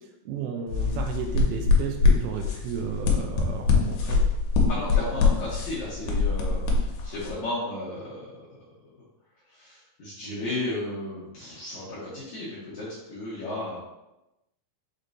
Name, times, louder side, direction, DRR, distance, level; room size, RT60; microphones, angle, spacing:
voice 1, 0.3-4.2, right 7 dB, 80° right, 3 dB, 2.3 m, -33 dB
sound 1, 0.7-7.3, left 4 dB, 85° left, 2.6 m, -24 dB
voice 2, 4.7-8.6 9.5-13.8, left 2 dB, 70° left, -8 dB, 1.8 m, -34 dB
6.4 x 3.0 x 2.5 m, 0.94 s
omnidirectional pair, 4.4 m